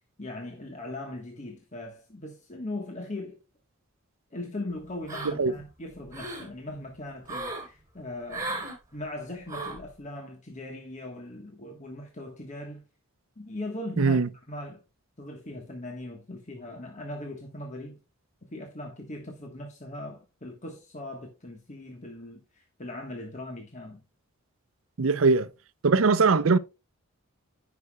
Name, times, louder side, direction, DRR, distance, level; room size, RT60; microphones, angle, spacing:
voice 1, 0.2-3.4 4.3-12.8 13.4-14.2 14.5-14.8 15.2-18.0 18.5-24.0, left 2 dB, 35° left, 1.4 m, -39 dB
sound 1, 5.1-5.6 5.9-6.5 7.3-7.7 8.3-8.8 9.5-9.8, right 2 dB, 15° right, 3.8 m, -35 dB
voice 2, 14.0-14.3 25.0-25.5 25.8-26.6, right 4 dB, 70° right, 0.6 m, -21 dB
16.0 x 5.9 x 2.3 m
head